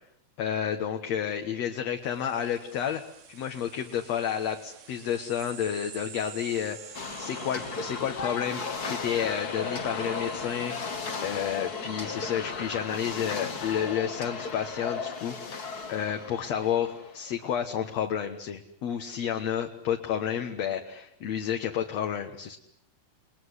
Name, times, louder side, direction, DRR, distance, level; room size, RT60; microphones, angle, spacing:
voice 1, 0.4-3.0 3.3-10.7 11.2-22.6, left 9 dB, 55° left, 5 dB, 2.3 m, -31 dB
sound 1, 2.0-13.1, right 8 dB, 65° right, 3.8 m, -50 dB
sound 2, 6.9-17.4, left 4 dB, 35° left, 1.7 m, -35 dB
30.0 x 20.5 x 9.7 m, 0.73 s
omnidirectional pair, 4.1 m